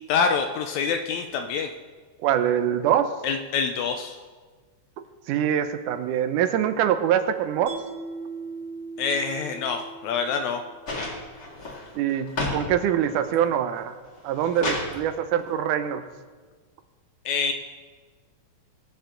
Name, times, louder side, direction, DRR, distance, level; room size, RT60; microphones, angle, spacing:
voice 1, 0.1-1.7 3.2-4.2 9.0-10.6 17.3-17.5, left 5 dB, 75° left, 6 dB, 1.8 m, -26 dB
voice 2, 2.2-3.1 5.3-7.7 12.0-14.0 14.2-16.0, right 10 dB, 80° right, 10 dB, 2.2 m, -24 dB
Mallet percussion, 7.7-10.9, right 4 dB, 65° right, 4.3 m, -39 dB
sound 1, 10.9-12.6 13.0-13.5 14.0-14.9 16.1-16.2, left 2 dB, 35° left, 2.2 m, -31 dB
21.5 x 7.1 x 3.8 m, 1.4 s
omnidirectional pair, 3.7 m